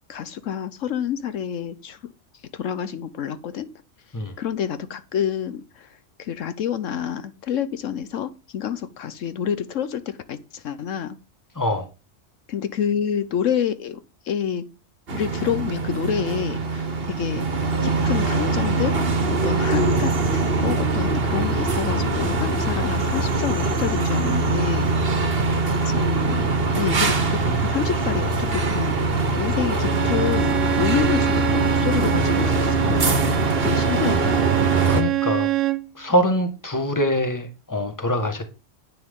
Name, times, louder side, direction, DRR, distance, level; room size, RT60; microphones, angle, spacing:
voice 1, 0.1-2.0 2.5-3.7 4.4-11.2 12.5-14.0 14.2-14.6 15.1-17.4 17.8-19.0 19.4-24.9 25.8-33.2 33.6-34.5, left 8 dB, 75° left, 1.2 m, -28 dB
voice 2, 11.5-11.9 34.9-35.5 35.9-38.5, equal, 15° left, 1.6 m, -24 dB
sound 1, 15.1-35.0, right 3 dB, 50° right, 1.5 m, -22 dB
Bowed string instrument, 29.8-35.9, right 13 dB, 75° right, 1.1 m, -26 dB
10.5 x 9.6 x 3.7 m
omnidirectional pair, 1.3 m